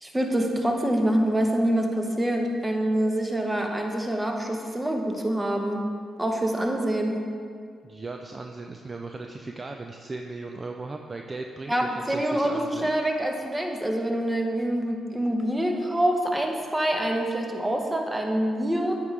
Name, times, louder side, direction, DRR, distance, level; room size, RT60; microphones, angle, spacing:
voice 1, 0.0-5.8 6.2-7.2 11.7-19.0, right 1 dB, 15° right, 2 dB, 1.0 m, -26 dB
voice 2, 7.8-12.9, right 3 dB, 35° right, 3 dB, 0.4 m, -37 dB
8.5 x 4.9 x 3.3 m, 2.2 s
supercardioid pair, 50°, 0 cm